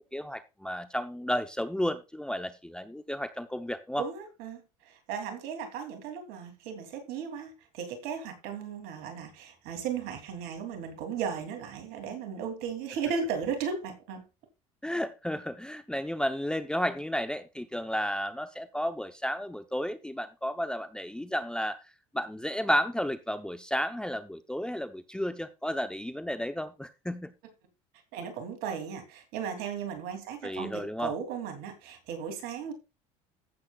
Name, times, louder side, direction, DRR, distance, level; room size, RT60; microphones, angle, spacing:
voice 1, 0.1-4.1 14.8-21.8 22.1-27.3 30.4-31.1, equal, 5° left, 0.7 m, -32 dB
voice 2, 4.0-4.6 4.9-14.2 28.1-32.7, right 6 dB, 65° right, 2.9 m, -36 dB
15.0 x 7.4 x 2.4 m
hypercardioid pair, 75°, 18 cm